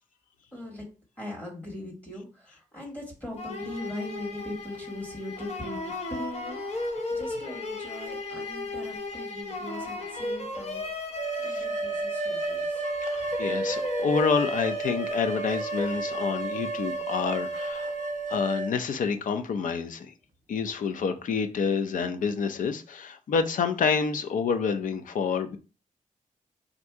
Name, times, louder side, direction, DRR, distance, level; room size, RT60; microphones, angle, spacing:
voice 1, 0.5-0.8 1.2-11.1 11.4-12.8, left 1 dB, 10° left, -2 dB, 1.4 m, -40 dB
sound 1, 3.4-18.4, left 2 dB, 55° left, 0.9 m, -36 dB
sound 2, 11.2-18.7, right 3 dB, 80° right, 0.5 m, -32 dB
voice 2, 13.0-17.9 18.3-20.1 20.5-25.6, left 5 dB, 80° left, 8 dB, 0.6 m, -28 dB
3.7 x 2.7 x 4.5 m, 0.34 s
wide cardioid pair, 160°, 13 cm